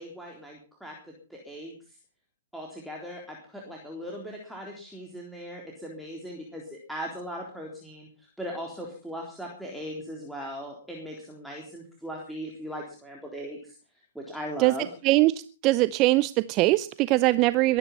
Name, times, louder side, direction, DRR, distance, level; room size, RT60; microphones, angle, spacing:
voice 1, 0.0-1.8 2.5-13.8 14.2-14.9, equal, ahead, -1 dB, 3.7 m, -39 dB
voice 2, 15.6-17.8, right 19 dB, 35° right, 16 dB, 0.6 m, -21 dB
22.0 x 10.0 x 5.4 m, 0.37 s
hypercardioid pair, 120°, 0 cm